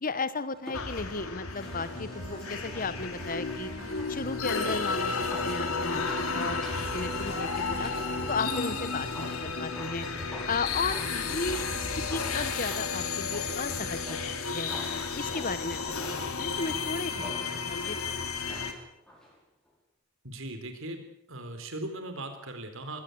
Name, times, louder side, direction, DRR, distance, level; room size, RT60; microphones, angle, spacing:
voice 1, 0.0-6.7 6.9-7.9 8.3-10.1 10.5-14.7 15.1-18.1, left 3 dB, 40° left, 14 dB, 1.2 m, -35 dB
sound 1, 0.5-19.4 19.7-19.8, equal, 5° left, 6.2 m, -48 dB
sound 2, 0.7-18.7, left 4 dB, 85° left, 3.1 m, -33 dB
sound 3, 1.6-9.3, equal, 15° right, 6.2 m, -47 dB
voice 2, 20.2-21.0 21.3-23.0, right 1 dB, 65° right, 7 dB, 4.0 m, -38 dB
21.0 x 17.5 x 8.2 m, 0.78 s
head